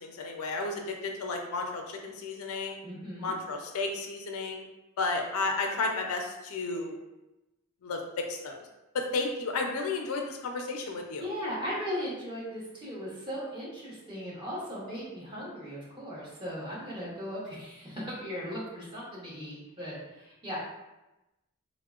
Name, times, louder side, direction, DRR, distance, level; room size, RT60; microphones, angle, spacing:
voice 1, 0.0-2.8 3.2-4.7 5.0-7.0 7.8-8.6 8.9-11.2, left 3 dB, 75° left, 3 dB, 0.4 m, -32 dB
voice 2, 2.8-3.3 11.2-20.6, equal, 20° right, -7 dB, 0.8 m, -37 dB
3.5 x 2.0 x 2.3 m, 0.99 s
head